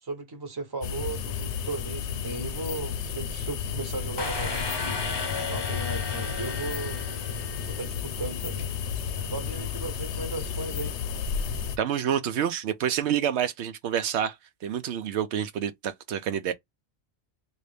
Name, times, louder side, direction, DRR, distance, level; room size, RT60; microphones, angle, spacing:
voice 1, 0.0-5.0 5.5-7.0 7.6-8.7 9.1-11.0, right 3 dB, 20° right, 0.9 m, -36 dB
sound 1, 0.8-11.8, left 7 dB, 85° left, 0.9 m, -32 dB
sound 2, 4.2-7.9, left 3 dB, 30° left, 0.6 m, -34 dB
voice 2, 11.8-14.4 14.6-16.5, right 9 dB, 80° right, 0.8 m, -28 dB
3.2 x 2.6 x 3.2 m
omnidirectional pair, 1.1 m